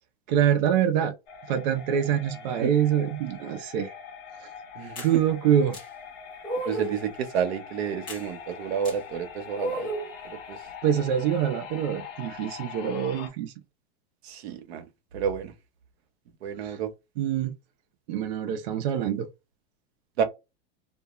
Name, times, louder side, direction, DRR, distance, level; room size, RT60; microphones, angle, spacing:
voice 1, 0.3-1.1 1.5-3.9 5.0-5.8 10.8-13.5 16.6-16.8 17.2-17.5 18.1-19.3, right 9 dB, 45° right, 0.4 m, -25 dB
sound 1, 1.3-13.3, left 7 dB, 40° left, 0.9 m, -43 dB
sound 2, 5.0-5.1 5.7-5.8 6.4-7.0 8.1-8.2 8.8-9.0 9.6-10.1, right 2 dB, 15° left, 0.7 m, -32 dB
voice 2, 6.7-9.9 10.5-10.6 14.2-14.8 15.1-15.5 16.4-16.9 20.2-20.3, right 7 dB, 80° right, 0.8 m, -30 dB
2.3 x 2.1 x 2.9 m
supercardioid pair, 165°, 31 cm